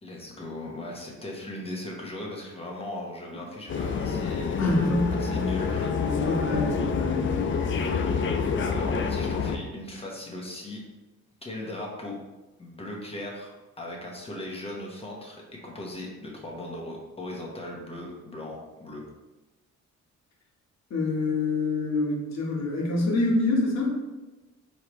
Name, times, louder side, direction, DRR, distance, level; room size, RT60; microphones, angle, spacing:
voice 1, 0.0-4.7 5.1-6.2 8.7-10.8 11.4-12.2 12.6-19.0, left 1 dB, 20° left, -1 dB, 1.2 m, -38 dB
sound 1, 3.7-9.6, left 5 dB, 40° left, 0.4 m, -27 dB
voice 2, 4.6-5.2 6.0-7.2 20.9-24.0, left 2 dB, 60° left, -1 dB, 1.3 m, -26 dB
4.7 x 3.2 x 3.1 m, 1.1 s
cardioid pair, 90°, 30 cm